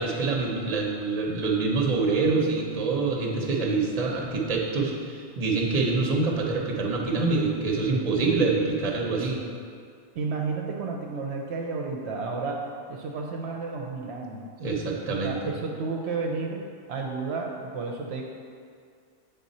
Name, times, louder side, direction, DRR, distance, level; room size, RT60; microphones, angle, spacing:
voice 1, 0.0-9.4 14.6-15.4, right 3 dB, 40° right, 0 dB, 0.7 m, -26 dB
voice 2, 10.1-14.4 15.1-18.2, right 4 dB, 70° right, 0 dB, 0.8 m, -32 dB
7.4 x 3.8 x 4.1 m, 2.2 s
omnidirectional pair, 1.2 m